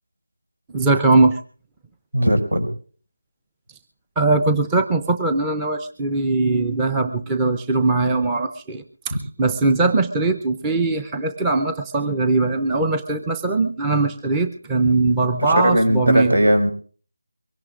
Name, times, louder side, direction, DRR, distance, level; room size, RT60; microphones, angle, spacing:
voice 1, 0.7-1.4 4.2-16.4, right 3 dB, 10° right, 8 dB, 0.6 m, -20 dB
voice 2, 2.1-2.7 9.1-9.2 15.4-16.7, equal, 75° right, 5 dB, 5.4 m, -18 dB
23.5 x 17.5 x 2.5 m, 0.42 s
figure-of-eight pair, 165°, 0 cm